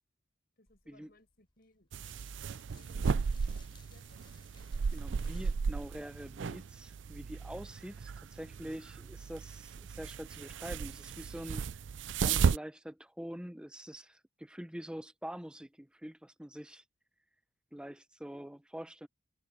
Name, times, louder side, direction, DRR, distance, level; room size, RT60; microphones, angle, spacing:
voice 1, 0.6-1.9 2.3-3.5 3.9-4.2, left 1 dB, 55° left, 6.6 m, -65 dB
sound 1, 0.7-7.0, left 2 dB, 25° left, 3.3 m, -61 dB
sound 2, 1.9-12.6, right 5 dB, 80° right, 0.4 m, -35 dB
voice 2, 4.9-11.6 12.2-16.8 17.7-19.1, equal, 5° right, 0.7 m, -45 dB
head